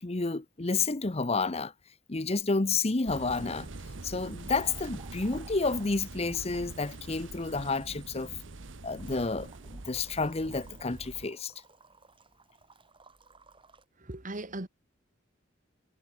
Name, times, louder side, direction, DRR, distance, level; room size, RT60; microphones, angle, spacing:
voice 1, 0.0-1.7 2.1-3.7 4.0-8.3 8.8-11.5, left 3 dB, 35° left, 0.9 m, -30 dB
sound 1, 3.1-11.3, right 2 dB, 80° right, 1.2 m, -44 dB
sound 2, 3.5-13.8, right 4 dB, 25° right, 7.9 m, -57 dB
voice 2, 14.0-14.7, right 2 dB, 45° right, 1.9 m, -38 dB
head